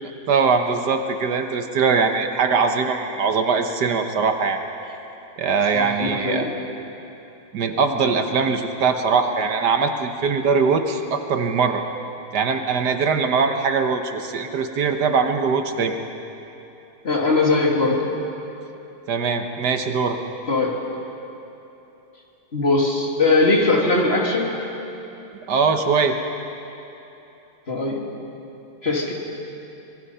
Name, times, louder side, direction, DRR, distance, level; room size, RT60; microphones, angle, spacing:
voice 1, 0.3-4.6 5.4-6.5 7.5-11.8 12.3-16.0 19.1-20.2 25.5-26.2, right 5 dB, 70° right, 6 dB, 1.7 m, -21 dB
voice 2, 5.7-6.5 17.0-18.0 20.5-20.8 22.5-24.5 27.7-28.0 28.8-29.1, left 3 dB, 35° left, -1 dB, 2.6 m, -20 dB
25.5 x 21.5 x 5.6 m, 3.0 s
omnidirectional pair, 1.9 m